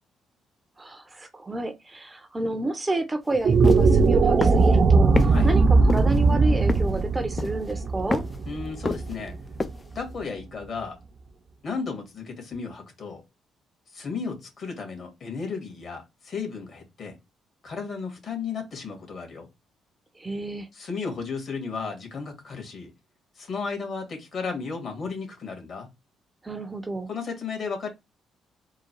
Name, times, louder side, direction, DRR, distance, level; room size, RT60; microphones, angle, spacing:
voice 1, 0.8-8.2 20.2-20.7 26.4-27.1, right 2 dB, 20° right, 0.7 m, -30 dB
sound 1, 3.3-9.7, right 4 dB, 50° right, 0.5 m, -20 dB
sound 2, 3.6-3.9 4.4-4.7 5.2-5.3 5.9-6.2 6.7-7.0 7.4-7.7 8.1-8.4 8.9-9.3 9.6-9.8, left 3 dB, 25° left, 0.5 m, -27 dB
voice 2, 8.4-9.3 10.0-11.0 11.6-13.2 13.9-17.2 17.6-19.5 20.7-22.9 23.4-25.9 27.1-27.9, left 5 dB, 50° left, 1.9 m, -34 dB
3.8 x 2.3 x 4.4 m
cardioid pair, 90°, 0 cm